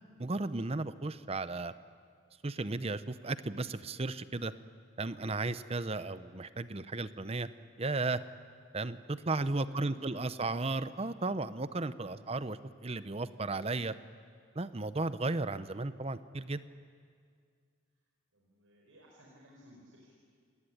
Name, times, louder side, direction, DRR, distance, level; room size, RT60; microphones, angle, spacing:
voice 1, 0.2-1.7 2.4-4.5 5.0-7.5 7.8-8.2 8.7-13.9 14.6-16.6, right 3 dB, 30° right, 13 dB, 0.7 m, -34 dB
voice 2, 9.7-10.6 12.1-12.4 18.3-20.2, right 1 dB, 85° right, -2 dB, 4.7 m, -59 dB
28.0 x 18.0 x 10.0 m, 2.1 s
head